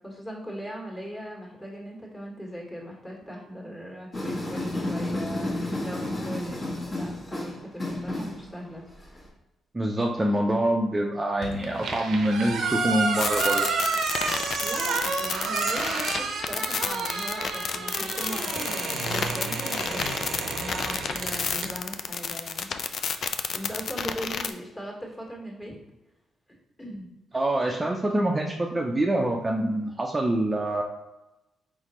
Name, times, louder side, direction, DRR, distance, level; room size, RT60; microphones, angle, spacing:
voice 1, 0.0-8.9 14.6-23.1 23.5-25.7 26.8-27.1, equal, 20° left, -2 dB, 1.6 m, -39 dB
sound 1, 4.1-9.3, left 1 dB, 35° left, 1.4 m, -31 dB
voice 2, 9.7-13.7 27.3-30.8, right 1 dB, 20° right, 0 dB, 0.5 m, -25 dB
sound 2, 11.4-21.7, right 4 dB, 80° right, 0.7 m, -30 dB
sound 3, 13.2-24.5, left 6 dB, 60° left, 0.3 m, -30 dB
4.1 x 3.9 x 3.1 m, 0.99 s
cardioid pair, 85°, 0 cm